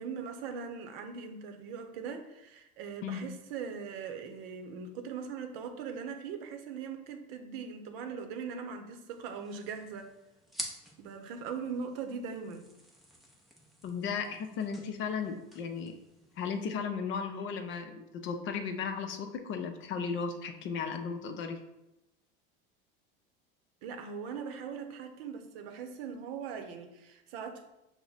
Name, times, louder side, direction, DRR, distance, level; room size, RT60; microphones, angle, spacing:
voice 1, 0.0-10.1 11.0-12.7 23.8-27.7, right 6 dB, 75° right, 6 dB, 0.7 m, -40 dB
sound 1, 9.1-16.7, equal, ahead, 0.6 m, -49 dB
voice 2, 13.8-15.9 16.4-21.6, left 6 dB, 40° left, 6 dB, 0.6 m, -35 dB
5.7 x 2.1 x 3.9 m, 0.91 s
supercardioid pair, 125°, 29 cm